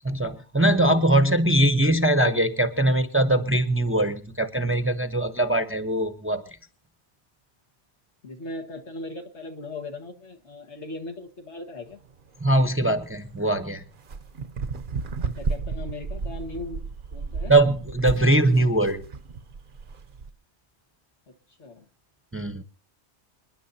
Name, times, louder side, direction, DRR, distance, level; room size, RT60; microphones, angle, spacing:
voice 1, 0.0-6.4 12.4-13.8 17.5-19.0 22.3-22.6, right 1 dB, 15° right, 8 dB, 0.7 m, -21 dB
voice 2, 8.2-12.0 15.4-16.8 17.1-17.5 21.6-21.8, left 2 dB, 75° left, 3 dB, 2.0 m, -38 dB
sound 1, 11.9-20.3, right 4 dB, 50° right, 0.9 m, -33 dB
27.5 x 10.5 x 2.8 m, 0.37 s
omnidirectional pair, 1.2 m